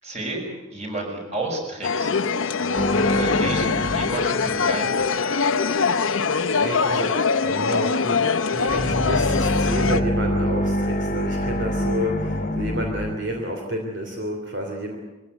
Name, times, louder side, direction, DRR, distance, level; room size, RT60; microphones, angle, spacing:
voice 1, 0.0-2.3 3.0-5.0, right 2 dB, 35° right, 0 dB, 6.5 m, -31 dB
sound 1, 1.8-10.0, left 5 dB, 85° left, 1.0 m, -23 dB
voice 2, 2.6-3.1 5.6-6.0 6.3-7.1 7.4-15.0, equal, 65° right, 2 dB, 3.2 m, -30 dB
sound 2, 2.8-5.0 8.6-13.2, left 1 dB, 40° left, 1.4 m, -25 dB
23.0 x 16.0 x 9.5 m, 1.1 s
head